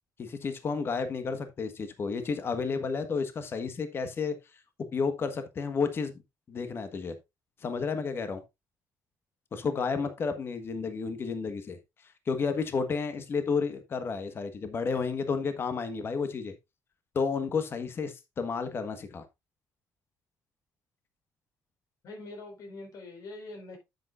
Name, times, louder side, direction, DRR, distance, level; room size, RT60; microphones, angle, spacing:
voice 1, 0.2-4.3 4.8-6.2 6.5-7.1 7.6-8.4 9.5-11.8 12.3-16.5 17.1-19.2, left 5 dB, 40° left, 1.4 m, -31 dB
voice 2, 22.0-23.8, left 2 dB, 60° left, 4.7 m, -43 dB
10.5 x 8.0 x 2.5 m
cardioid pair, 130°, 6 cm